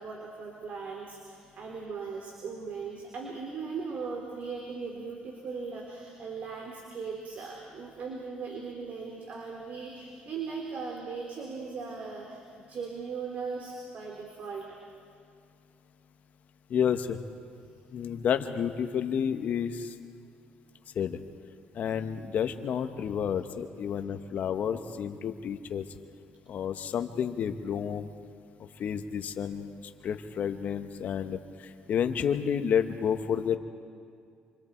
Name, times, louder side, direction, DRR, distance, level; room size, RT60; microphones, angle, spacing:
voice 1, 0.0-14.8, right 5 dB, 55° right, 0 dB, 3.4 m, -38 dB
voice 2, 16.7-17.2 17.9-19.9 20.9-21.2 21.7-25.8 26.5-28.1 28.8-29.7 30.0-33.6, left 8 dB, 60° left, 8 dB, 1.4 m, -30 dB
27.5 x 25.5 x 4.7 m, 2.3 s
cardioid pair, 85°, 3 cm